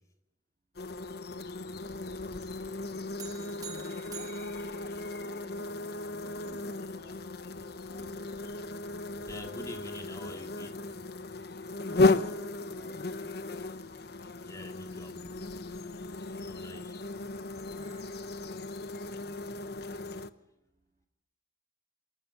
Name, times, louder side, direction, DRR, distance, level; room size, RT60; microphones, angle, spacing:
sound 1, 0.7-20.3, left 2 dB, 55° left, 0.9 m, -35 dB
sound 2, 3.2-5.7, right 7 dB, 20° right, 1.4 m, -48 dB
voice 1, 4.8-5.9 6.2-7.3 7.9-8.6 11.9-13.7 14.1-14.2 16.8-17.5 17.8-18.1, right 1 dB, 35° right, 2 dB, 2.4 m, -57 dB
voice 2, 9.3-10.8 14.5-15.5 16.3-18.0, left 1 dB, 20° left, 4 dB, 2.4 m, -47 dB
25.0 x 14.0 x 9.6 m, 0.90 s
head